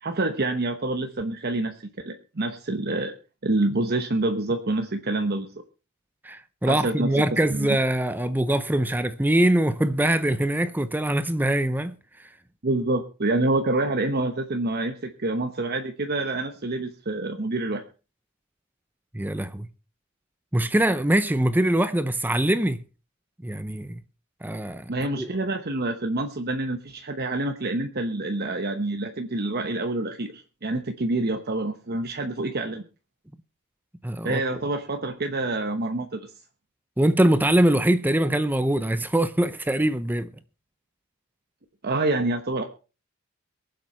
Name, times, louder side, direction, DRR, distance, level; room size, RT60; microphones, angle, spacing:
voice 1, 0.0-3.1 3.4-5.5 6.7-7.7 12.6-17.8 24.9-32.8 34.2-36.3 41.8-42.6, right 2 dB, 45° right, 1.0 m, -27 dB
voice 2, 6.2-12.3 19.1-19.7 20.5-22.8 23.4-24.0 24.4-24.9 25.2-25.3 34.0-34.4 37.0-40.3, right 1 dB, 10° right, 0.6 m, -23 dB
22.5 x 7.8 x 4.4 m
head